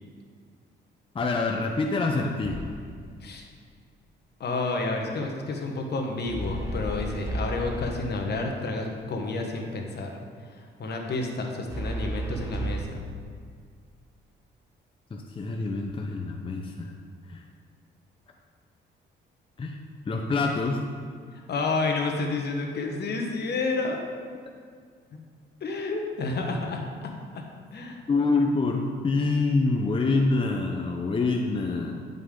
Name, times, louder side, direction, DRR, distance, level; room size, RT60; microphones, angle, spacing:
voice 1, 1.1-2.7 15.1-16.9 17.3-17.4 19.6-19.8 20.0-20.8 28.1-32.0, left 3 dB, 25° left, 2 dB, 0.7 m, -26 dB
sound 1, 2.4-3.0 6.3-8.3 11.7-12.8, right 1 dB, 15° right, 1.3 m, -33 dB
voice 2, 4.4-10.1 10.8-13.0 21.5-24.0 25.6-27.4 27.7-28.0, left 3 dB, 55° left, 2 dB, 1.3 m, -30 dB
9.9 x 5.5 x 3.8 m, 2.1 s
cardioid pair, 90°, 20 cm